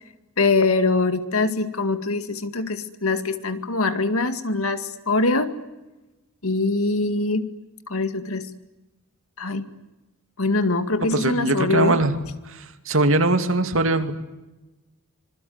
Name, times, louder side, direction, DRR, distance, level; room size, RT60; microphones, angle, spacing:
voice 1, 0.4-5.5 6.4-7.5 7.9-8.5 9.4-9.7 10.4-12.0, left 3 dB, 75° left, 9 dB, 2.2 m, -23 dB
voice 2, 11.1-12.1 12.9-14.1, right 2 dB, 65° right, 8 dB, 2.5 m, -20 dB
26.0 x 22.0 x 9.6 m, 1.1 s
head